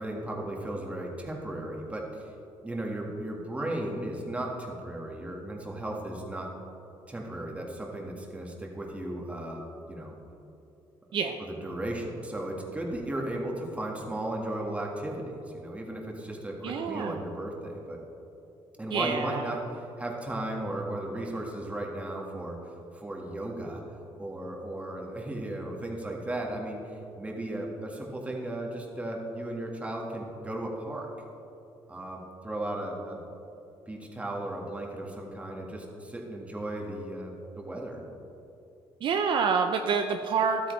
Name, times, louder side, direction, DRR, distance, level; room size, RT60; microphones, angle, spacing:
voice 1, 0.0-2.3 2.6-6.5 7.1-9.6 9.9-10.1 11.4-18.0 18.8-22.6 22.9-23.8 24.2-26.8 27.2-31.1 31.9-33.2 33.9-38.0, right 1 dB, 15° right, -1 dB, 1.7 m, -35 dB
voice 2, 16.6-17.2 18.9-19.5 39.0-40.6, right 6 dB, 60° right, 5 dB, 0.5 m, -27 dB
12.5 x 8.4 x 3.2 m, 2.9 s
cardioid pair, 100°, 10 cm